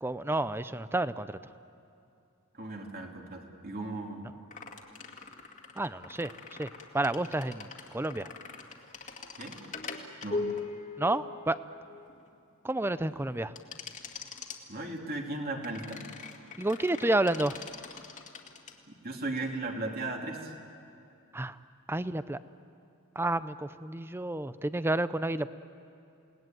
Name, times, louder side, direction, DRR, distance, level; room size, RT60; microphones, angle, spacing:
voice 1, 0.0-1.3 5.8-6.3 6.6-6.7 6.9-8.3 11.0-11.6 12.6-13.5 16.6-17.6 21.3-21.6 21.9-22.4 23.2-25.5, right 2 dB, 10° right, 14 dB, 0.5 m, -30 dB
voice 2, 2.6-4.2 9.4-9.5 10.2-10.4 14.7-16.0 19.0-20.5, right 2 dB, 40° right, 1 dB, 3.0 m, -36 dB
sound 1, 4.5-12.3 13.6-14.6 15.6-18.8, left 4 dB, 35° left, 2.1 m, -41 dB
29.0 x 19.0 x 9.2 m, 2.6 s
head